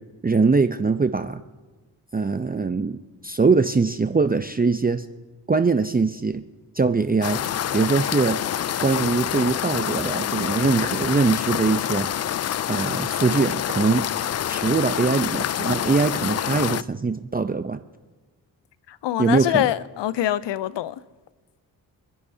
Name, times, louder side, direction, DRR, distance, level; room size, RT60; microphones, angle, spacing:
voice 1, 0.2-1.4 2.1-5.1 5.5-6.4 6.7-7.4 7.7-8.4 8.8-12.1 12.7-14.1 14.5-17.8 19.2-19.7, right 4 dB, 20° right, 0.7 m, -22 dB
sound 1, 7.2-16.8, left 10 dB, 40° left, 0.4 m, -27 dB
voice 2, 18.9-21.0, left 12 dB, 75° left, 0.7 m, -24 dB
27.5 x 10.5 x 2.8 m
supercardioid pair, 40°, 44 cm